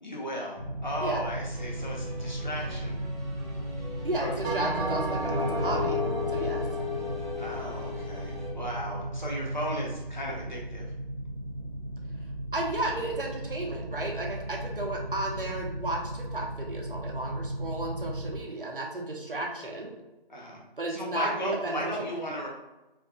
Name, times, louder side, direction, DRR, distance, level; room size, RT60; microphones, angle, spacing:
voice 1, 0.0-3.0 4.2-4.3 7.4-10.9 20.3-20.6 20.9-22.5, equal, 50° left, -3 dB, 1.0 m, -35 dB
sound 1, 0.6-18.3, right 1 dB, 30° right, 0.8 m, -36 dB
sound 2, 1.5-8.5, left 1 dB, ahead, 0.4 m, -45 dB
voice 2, 4.0-6.0 6.3-6.6 12.5-19.9 20.8-21.3 21.6-22.1, right 1 dB, 60° right, 0 dB, 0.8 m, -33 dB
Bell, 4.4-9.0, left 2 dB, 90° right, 1.1 m, -32 dB
4.6 x 2.5 x 2.2 m, 1.0 s
figure-of-eight pair, 180°, 30 cm